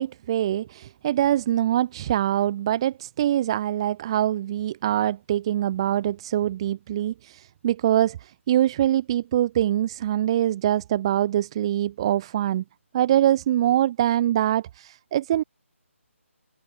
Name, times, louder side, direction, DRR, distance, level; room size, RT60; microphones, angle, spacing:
voice 1, 0.0-12.6 12.9-15.4, right 12 dB, 20° right, 1.9 m, -24 dB
hypercardioid pair, 170°, 7 cm